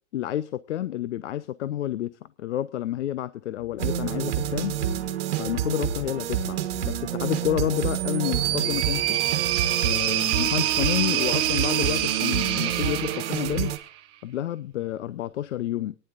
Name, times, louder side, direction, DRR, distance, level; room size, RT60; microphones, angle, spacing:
voice 1, 0.1-2.1 2.4-4.8 5.4-6.6 6.9-9.2 9.8-13.7 14.2-16.0, left 12 dB, 85° left, 0.7 m, -29 dB
sound 1, 3.6-13.1, left 5 dB, 10° left, 1.3 m, -48 dB
sound 2, 3.8-13.8, right 10 dB, 60° right, 1.5 m, -29 dB
sound 3, 7.8-14.0, right 13 dB, 15° right, 0.5 m, -27 dB
24.5 x 10.0 x 2.5 m
hypercardioid pair, 160°, 35 cm